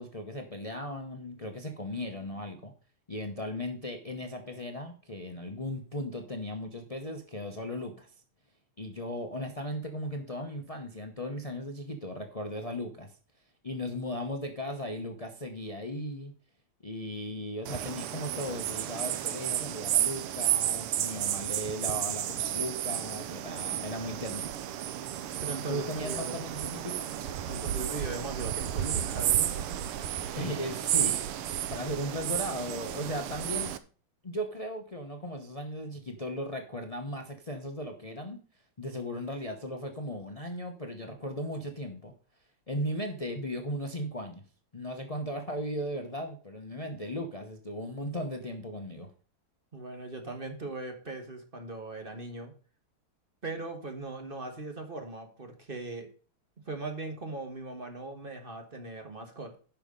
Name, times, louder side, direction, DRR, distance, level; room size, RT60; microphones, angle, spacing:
voice 1, 0.0-2.7 3.1-8.2 8.8-13.2 13.6-16.3 16.8-24.5 25.7-27.1 30.3-31.4 31.7-33.8 34.2-38.4 38.8-42.1 42.7-44.4 44.7-49.1, equal, 70° left, 4 dB, 0.3 m, -37 dB
sound 1, 17.7-33.8, right 11 dB, 85° right, 1.7 m, -32 dB
voice 2, 25.4-26.4 27.5-30.0 30.3-30.5 49.7-52.5 53.4-56.1 56.7-59.6, right 2 dB, 25° right, 5 dB, 1.5 m, -39 dB
10.5 x 5.8 x 5.2 m, 0.39 s
omnidirectional pair, 2.4 m